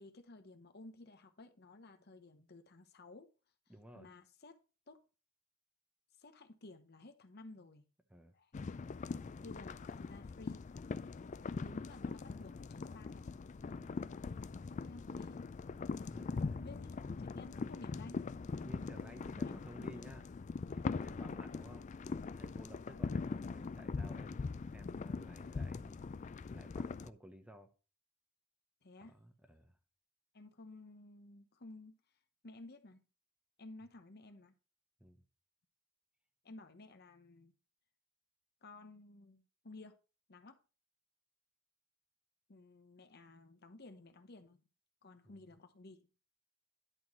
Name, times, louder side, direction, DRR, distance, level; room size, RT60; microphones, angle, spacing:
voice 1, 0.0-3.3 3.9-4.6 4.9-5.0 6.2-7.8 8.3-8.5 9.4-10.6 11.6-13.3 14.7-15.4 16.6-18.3 19.5-19.6 28.8-29.2 30.3-32.0 32.4-33.0 33.6-34.5 36.4-37.5 38.6-40.0 40.3-40.6 42.5-44.7 45.0-46.1, left 2 dB, 55° left, 1.0 m, -54 dB
voice 2, 3.7-4.1 8.1-8.3 13.6-14.0 16.1-16.7 18.6-20.3 20.7-21.9 22.3-26.0 26.5-27.7 29.0-29.8 35.0-35.2 45.2-45.3, equal, 5° right, 1.0 m, -55 dB
sound 1, 8.5-27.1, left 4 dB, 35° left, 0.4 m, -41 dB
11.0 x 3.8 x 6.1 m
head